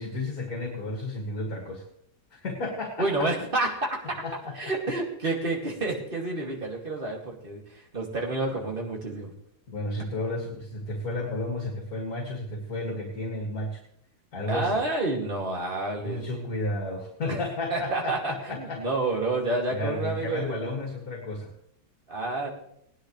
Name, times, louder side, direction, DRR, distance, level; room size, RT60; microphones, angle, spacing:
voice 1, 0.0-1.8 2.3-3.3 4.2-4.6 9.7-13.8 14.3-14.8 16.0-18.8 19.7-21.5, left 2 dB, 55° left, -1 dB, 2.6 m, -32 dB
voice 2, 3.0-4.2 4.5-9.3 14.5-16.2 17.3-17.4 17.7-20.7 22.1-22.5, right 2 dB, 30° right, -1 dB, 2.5 m, -29 dB
19.5 x 10.5 x 3.3 m, 0.73 s
omnidirectional pair, 1.9 m